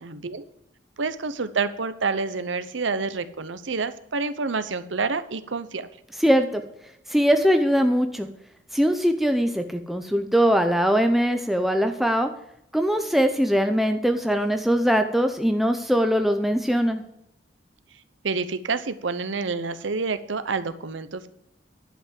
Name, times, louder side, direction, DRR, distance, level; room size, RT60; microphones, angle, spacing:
voice 1, 0.0-0.4 1.0-5.9 18.2-21.3, right 4 dB, 85° right, 13 dB, 0.8 m, -28 dB
voice 2, 6.2-6.6 7.1-8.3 8.7-12.3 12.7-17.0, equal, ahead, 6 dB, 0.6 m, -21 dB
11.0 x 5.8 x 7.6 m, 0.78 s
head